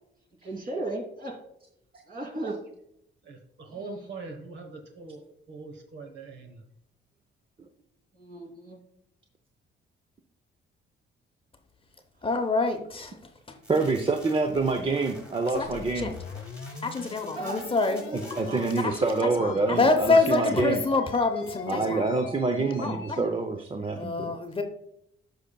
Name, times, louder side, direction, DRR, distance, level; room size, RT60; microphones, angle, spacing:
voice 1, 0.4-1.4 2.1-2.6 3.7-4.1 8.1-8.8 17.3-17.7 18.3-18.7, right 2 dB, 45° right, 0 dB, 2.8 m, -36 dB
voice 2, 3.3-5.2 5.5-6.6, right 3 dB, 65° right, 5 dB, 1.2 m, -42 dB
voice 3, 12.2-13.2 13.5-13.6 15.5-16.1 16.8-18.4 19.2-22.0 22.8-23.2 23.9-24.6, left 3 dB, 25° left, 5 dB, 0.8 m, -26 dB
sound 1, 13.6-19.2, equal, 5° right, 1.9 m, -50 dB
voice 4, 13.7-16.1 18.4-20.8 21.7-24.3, right 3 dB, 25° right, 5 dB, 0.7 m, -26 dB
sound 2, 15.5-23.3, left 6 dB, 80° left, 1.0 m, -41 dB
12.5 x 5.2 x 2.3 m, 0.76 s
cardioid pair, 90°, 20 cm